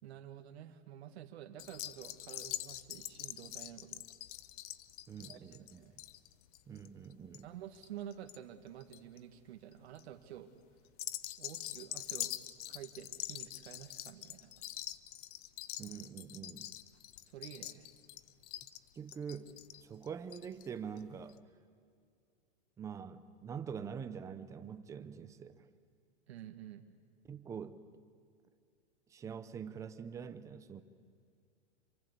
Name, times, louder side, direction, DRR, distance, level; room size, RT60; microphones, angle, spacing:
voice 1, 0.0-4.0 5.3-6.0 7.4-10.5 11.4-12.4 12.7-14.5 17.3-17.9 26.3-26.9, right 11 dB, 75° right, 5 dB, 2.0 m, -50 dB
sound 1, 1.6-8.4 8.7-9.2 9.7-10.0 10.9-20.7 21.0-21.1 21.3-21.4, left 15 dB, 35° left, 0.7 m, -44 dB
voice 2, 5.1-5.8 6.7-7.5 15.8-16.7 18.9-19.5 19.8-21.4 22.8-25.7 27.3-27.8 29.1-30.8, right 7 dB, 10° right, 11 dB, 0.6 m, -45 dB
27.0 x 23.5 x 8.3 m, 2.3 s
supercardioid pair, 170°, 32 cm